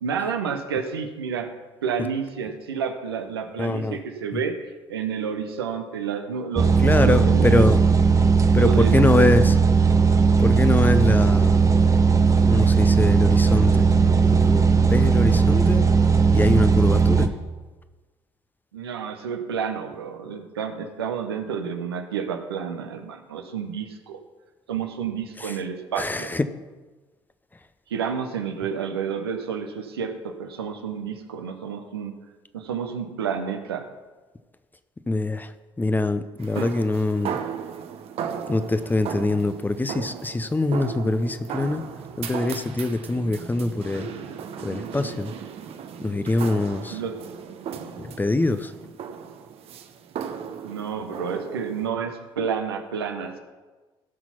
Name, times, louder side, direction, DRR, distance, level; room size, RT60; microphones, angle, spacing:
voice 1, 0.0-1.5 1.8-7.7 8.6-9.3 18.7-24.2 24.7-26.3 27.9-32.1 32.5-33.9 36.6-36.7 46.9-47.2 50.6-53.4, right 6 dB, 75° right, 6 dB, 1.0 m, -30 dB
voice 2, 3.6-4.0 4.3-4.4 6.8-7.8 8.5-9.5 10.4-11.7 12.5-13.9 14.3-15.9 16.3-17.3 26.0-26.5 35.1-35.5 35.8-37.4 38.5-41.8 42.2-44.1 44.6-45.3 46.0-47.0 48.0-48.7, left 2 dB, 15° left, 11 dB, 0.8 m, -23 dB
sound 1, 6.6-17.3, right 5 dB, 25° right, 1.0 m, -18 dB
sound 2, 36.4-51.9, right 7 dB, 50° right, 0.9 m, -36 dB
16.5 x 6.1 x 5.8 m, 1.3 s
figure-of-eight pair, 50°, 13 cm